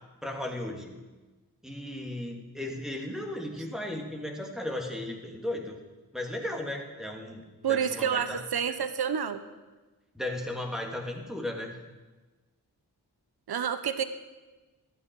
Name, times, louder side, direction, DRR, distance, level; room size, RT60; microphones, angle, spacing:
voice 1, 0.2-1.0 1.6-5.8 6.1-8.4 10.1-11.8, left 1 dB, ahead, 0 dB, 2.6 m, -35 dB
voice 2, 7.6-9.4 13.5-14.0, right 8 dB, 65° right, 11 dB, 0.9 m, -29 dB
14.0 x 10.0 x 4.7 m, 1.2 s
cardioid pair, 40°, 41 cm